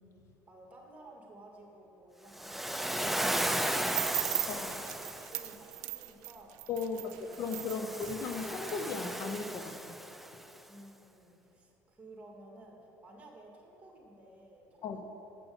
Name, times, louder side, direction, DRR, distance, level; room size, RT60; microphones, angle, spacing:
voice 1, 0.5-4.8 5.0-6.5 6.8-7.2 10.7-15.0, right 2 dB, 20° right, 1 dB, 1.9 m, -55 dB
Waves surf, 2.3-5.5 7.3-10.4, right 1 dB, 5° right, 0.4 m, -35 dB
sound 1, 3.9-9.1, right 20 dB, 85° right, 0.4 m, -38 dB
voice 2, 6.7-10.0 14.8-15.0, left 4 dB, 50° left, 6 dB, 0.7 m, -36 dB
7.7 x 6.1 x 7.8 m, 2.9 s
supercardioid pair, 100°, 6 cm